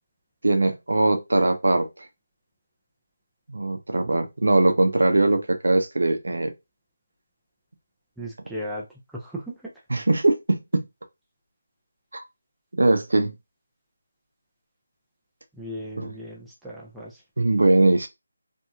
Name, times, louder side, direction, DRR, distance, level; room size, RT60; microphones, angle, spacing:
voice 1, 0.4-2.1 3.5-6.5 9.9-10.8 12.1-12.2 12.7-13.3 16.0-16.1 17.4-18.1, right 2 dB, 85° right, 0.7 m, -21 dB
voice 2, 8.2-8.9 9.1-9.7 15.6-17.2, equal, ahead, 0.3 m, -36 dB
2.9 x 2.6 x 2.3 m
figure-of-eight pair, 175°, 0 cm